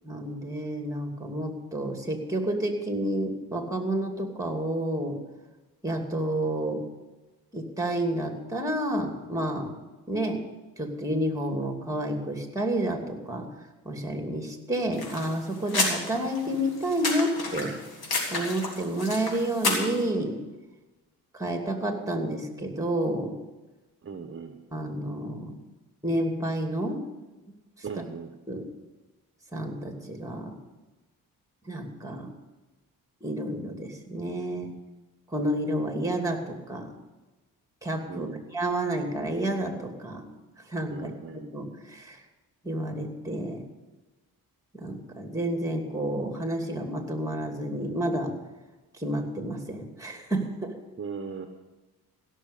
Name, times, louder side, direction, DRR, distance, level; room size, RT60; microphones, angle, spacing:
voice 1, 0.0-5.2 5.8-6.8 7.5-9.7 10.1-10.4 10.8-13.5 13.8-17.7 18.3-20.4 21.3-23.4 24.7-25.6 26.0-27.0 27.8-28.0 28.5-28.7 29.5-30.5 31.6-32.3 33.2-34.7 35.3-36.9 37.8-40.2 40.7-42.2 42.6-43.6 44.7-48.3 48.9-50.7, right 1 dB, 10° right, 4 dB, 2.7 m, -30 dB
sound 1, 14.9-20.0, left 3 dB, 65° left, 3.5 m, -31 dB
voice 2, 24.0-24.6 27.8-28.3 38.1-38.4 40.9-41.5 51.0-51.5, right 5 dB, 30° right, 6 dB, 1.1 m, -38 dB
16.5 x 6.6 x 8.4 m, 1.2 s
cardioid pair, 80°, 39 cm